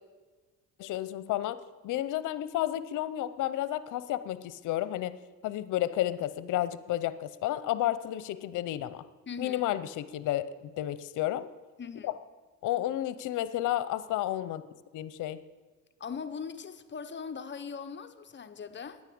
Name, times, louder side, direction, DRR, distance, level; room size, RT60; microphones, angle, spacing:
voice 1, 0.8-1.6 1.8-5.1 5.4-9.0 9.4-10.5 10.8-11.5 12.0-12.1 12.6-14.6 14.9-15.4, left 13 dB, 85° left, 0.7 m, -31 dB
voice 2, 9.3-9.6 11.8-12.1 16.0-19.0, left 6 dB, 40° left, 1.0 m, -40 dB
10.0 x 9.5 x 8.6 m
cardioid pair, 90°, 30 cm